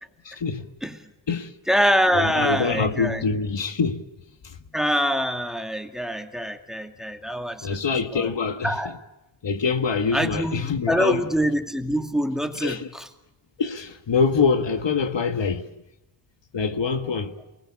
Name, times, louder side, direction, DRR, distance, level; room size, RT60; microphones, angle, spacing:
voice 1, 0.2-0.7 1.3-1.5 2.1-4.1 4.4-4.6 7.6-9.0 9.4-11.3 12.6-12.9 13.6-15.7 16.5-17.3, left 5 dB, 70° left, 1.6 m, -25 dB
voice 2, 1.7-3.2 4.7-7.8 8.1-8.3 8.6-8.9 10.1-13.1 17.0-17.2, equal, ahead, 2.2 m, -25 dB
28.5 x 20.5 x 8.6 m
wide cardioid pair, 110°, 46 cm